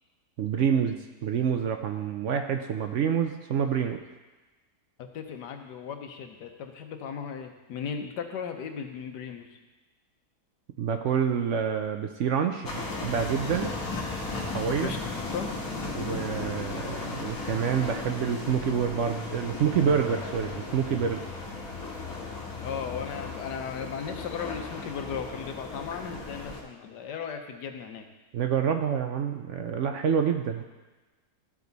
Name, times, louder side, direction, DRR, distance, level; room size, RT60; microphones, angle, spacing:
voice 1, 0.4-1.0 1.2-4.0 10.8-13.7 14.5-14.9 15.9-21.2 28.3-30.6, right 7 dB, 70° right, 5 dB, 0.7 m, -27 dB
voice 2, 5.1-9.5 14.7-15.0 15.3-15.5 22.6-28.1, left 7 dB, 85° left, 5 dB, 1.4 m, -36 dB
sound 1, 12.6-26.6, left 3 dB, 60° left, 1.9 m, -35 dB
13.5 x 4.8 x 4.0 m, 1.2 s
omnidirectional pair, 1.8 m